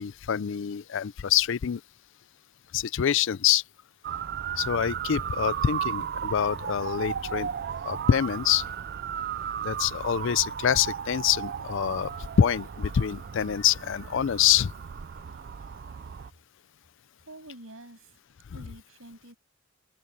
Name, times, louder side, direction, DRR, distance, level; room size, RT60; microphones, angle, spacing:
voice 1, 0.0-1.8 2.7-3.6 4.6-7.5 7.9-8.6 9.6-12.1 12.4-14.7, left 9 dB, 65° left, 0.4 m, -25 dB
Motor vehicle (road) / Siren, 4.0-16.3, right 8 dB, 50° right, 0.4 m, -35 dB
voice 2, 17.3-18.2 18.5-19.4, right 1 dB, 75° right, 7.5 m, -47 dB
head